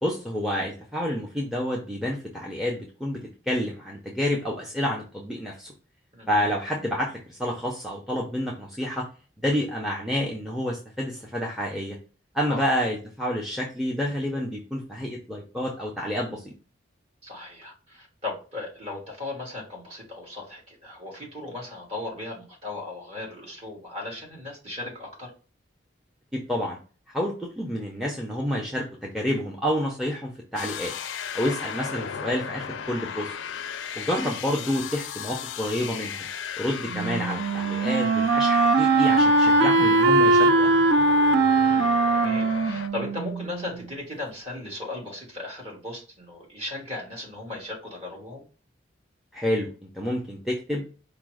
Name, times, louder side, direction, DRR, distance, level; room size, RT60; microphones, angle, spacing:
voice 1, 0.0-3.2 3.5-5.7 6.3-9.0 9.4-12.0 12.3-16.5 26.3-26.8 27.1-30.9 31.3-33.3 34.0-36.3 36.6-40.7 49.3-49.7 49.9-50.8, equal, ahead, -2 dB, 0.6 m, -29 dB
voice 2, 6.1-6.5 12.5-12.6 17.2-25.3 31.4-31.5 41.6-48.5, left 2 dB, 30° right, -3 dB, 1.7 m, -37 dB
sound 1, 30.6-42.9, left 7 dB, 80° left, 0.4 m, -36 dB
Wind instrument woodwind instrument, 36.9-43.8, right 2 dB, 70° right, 0.4 m, -21 dB
4.9 x 2.1 x 4.7 m, 0.37 s
head